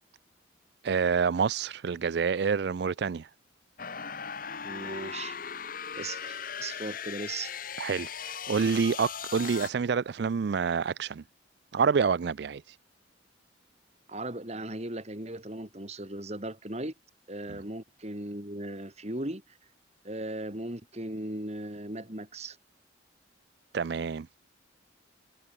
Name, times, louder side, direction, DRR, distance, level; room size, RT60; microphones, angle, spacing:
voice 1, 0.8-3.3 7.8-11.2 11.7-12.8 17.5-17.6 23.7-24.3, right 6 dB, 55° right, 0.4 m, -28 dB
sound 1, 3.8-9.7, left 7 dB, 45° left, 1.5 m, -38 dB
voice 2, 4.6-5.4 5.9-7.5 14.1-16.9 17.3-19.6 20.0-22.6, right 1 dB, 35° right, 3.1 m, -37 dB
head